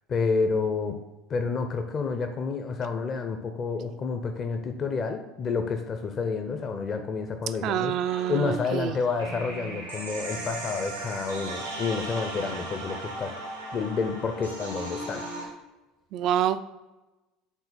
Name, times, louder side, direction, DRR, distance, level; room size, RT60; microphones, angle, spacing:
voice 1, 0.1-1.0 1.3-7.9 8.3-13.3 13.7-15.5, left 4 dB, 35° left, 5 dB, 0.7 m, -29 dB
voice 2, 7.6-9.0 16.1-16.6, right 10 dB, 50° right, 12 dB, 0.4 m, -27 dB
sound 1, 8.0-15.5, right 2 dB, 90° right, 2.1 m, -37 dB
9.1 x 3.9 x 4.2 m, 1.1 s
figure-of-eight pair, 70°, 0 cm